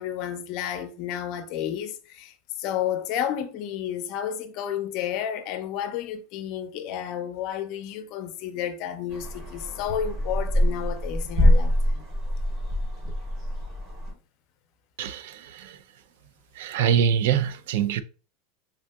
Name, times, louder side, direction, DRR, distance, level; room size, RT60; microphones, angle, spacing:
voice 1, 0.0-2.3 2.6-12.0, left 9 dB, 45° left, 0.5 m, -31 dB
sound 1, 9.1-14.1, equal, 30° right, 0.9 m, -24 dB
voice 2, 15.0-15.8 16.6-18.0, right 8 dB, 70° right, 0.3 m, -24 dB
3.5 x 2.6 x 2.2 m
supercardioid pair, 150°, 0 cm